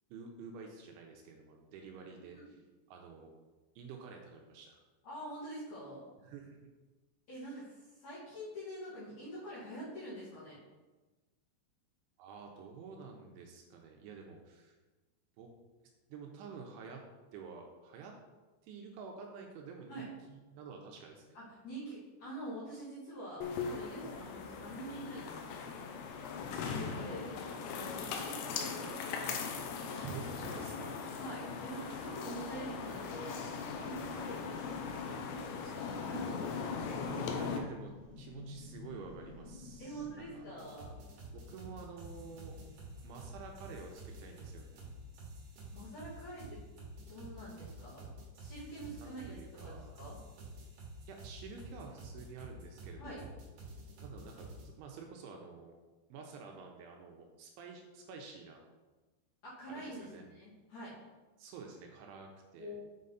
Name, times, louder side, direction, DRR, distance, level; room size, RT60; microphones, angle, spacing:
voice 1, 0.1-2.6 2.9-3.3 3.8-4.8 6.2-6.7 7.3-7.6 12.2-14.8 15.4-15.5 16.1-17.0 17.3-18.1 18.6-21.4 29.9-31.0 34.1-34.4 37.1-37.9 38.2-40.0 40.3-40.4 41.3-42.6 43.0-44.8 48.7-50.0 51.1-53.4 54.0-55.7 56.1-58.6 59.7-60.2 61.4-62.7, right 5 dB, 85° right, 2 dB, 2.9 m, -49 dB
voice 2, 1.9-2.4 5.0-6.1 7.3-10.6 19.9-20.1 21.3-25.7 26.6-27.3 27.7-29.1 31.2-33.5 33.8-36.5 39.8-41.0 45.7-46.6 47.1-48.1 48.3-50.2 53.0-53.2 59.4-61.0 62.6-62.8, right 1 dB, 45° left, -10 dB, 3.2 m, -46 dB
sound 1, 23.4-37.6, left 5 dB, 85° left, 2.4 m, -39 dB
sound 2, 33.5-45.4, left 3 dB, 65° left, 3.1 m, -54 dB
sound 3, 40.6-54.7, right 2 dB, 60° right, 2.5 m, -49 dB
7.5 x 5.4 x 4.0 m, 1.2 s
omnidirectional pair, 5.6 m